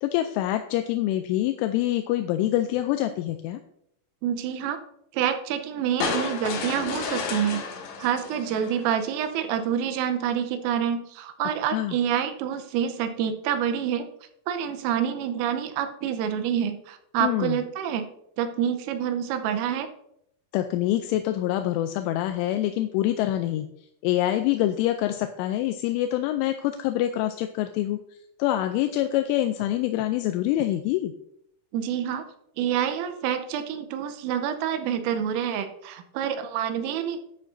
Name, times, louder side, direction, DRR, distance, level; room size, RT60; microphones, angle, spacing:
voice 1, 0.0-3.6 11.6-12.0 17.2-17.6 20.5-23.7 24.0-28.0 28.4-31.1, left 13 dB, 85° left, 7 dB, 2.8 m, -25 dB
voice 2, 4.2-4.8 5.1-7.6 8.0-14.1 14.5-18.1 18.4-19.9 31.7-32.3 32.6-37.2, right 9 dB, 90° right, 9 dB, 3.3 m, -27 dB
sound 1, 6.0-9.3, left 5 dB, 65° left, 3.6 m, -32 dB
11.0 x 10.0 x 2.6 m, 0.74 s
omnidirectional pair, 6.0 m